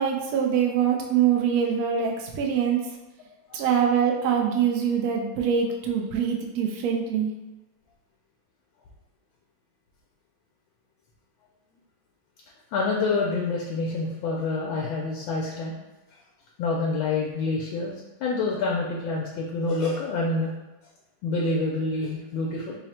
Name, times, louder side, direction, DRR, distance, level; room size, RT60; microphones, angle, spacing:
voice 1, 0.0-2.8 3.5-7.3, right 7 dB, 70° right, 1 dB, 0.9 m, -24 dB
voice 2, 12.7-15.8 16.6-17.9 18.2-20.5 21.2-22.8, left 3 dB, 80° left, -2 dB, 1.3 m, -27 dB
3.8 x 2.0 x 4.2 m, 1.1 s
omnidirectional pair, 2.2 m